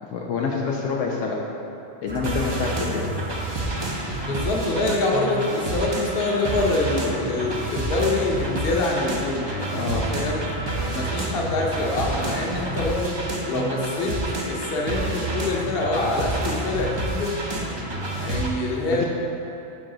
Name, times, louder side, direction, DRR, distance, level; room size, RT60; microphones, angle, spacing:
voice 1, 0.0-1.4 2.0-3.1 9.7-10.1 18.9-19.0, left 5 dB, 75° left, -1 dB, 1.0 m, -27 dB
sound 1, 2.1-18.5, right 2 dB, 30° right, 0.5 m, -28 dB
voice 2, 4.2-10.4 10.9-13.2 13.4-14.2 14.5-17.4 17.9-19.0, left 2 dB, 50° left, -1 dB, 1.1 m, -25 dB
8.7 x 4.5 x 3.9 m, 2.9 s
omnidirectional pair, 1.3 m